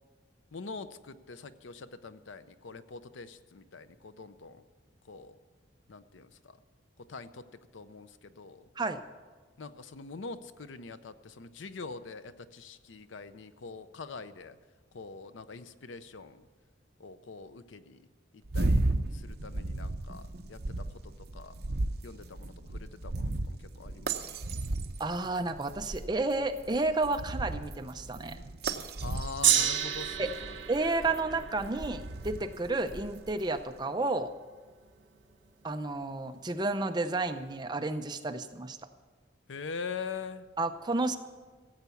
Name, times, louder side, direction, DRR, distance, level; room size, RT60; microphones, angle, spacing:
voice 1, 0.5-4.6 5.1-5.4 5.9-6.6 7.1-7.4 7.7-8.7 9.6-14.6 14.9-16.5 17.0-18.0 18.5-18.9 19.1-21.6 22.0-24.2 29.0-30.6 39.5-40.5, left 4 dB, 80° left, 13 dB, 0.6 m, -44 dB
sound 1, 18.4-33.6, right 2 dB, 55° right, 0.7 m, -35 dB
voice 2, 25.0-28.4 30.2-30.3 30.7-34.3 35.6-38.8 40.6-41.2, right 2 dB, 20° right, 7 dB, 0.6 m, -31 dB
Gong, 29.4-35.8 36.6-36.7, right 10 dB, 70° right, 1.5 m, -33 dB
15.5 x 8.1 x 7.0 m, 1.4 s
head